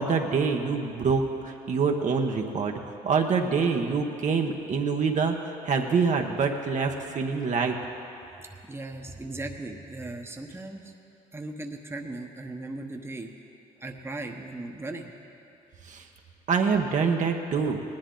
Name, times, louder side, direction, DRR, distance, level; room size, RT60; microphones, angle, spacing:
voice 1, 0.0-7.8 15.8-16.1 16.5-17.8, right 5 dB, 50° right, 2 dB, 1.1 m, -26 dB
voice 2, 8.4-10.9 11.3-13.3 13.8-15.1, right 2 dB, 15° right, 2 dB, 1.1 m, -38 dB
18.5 x 10.5 x 3.9 m, 2.7 s
supercardioid pair, 65°, 16 cm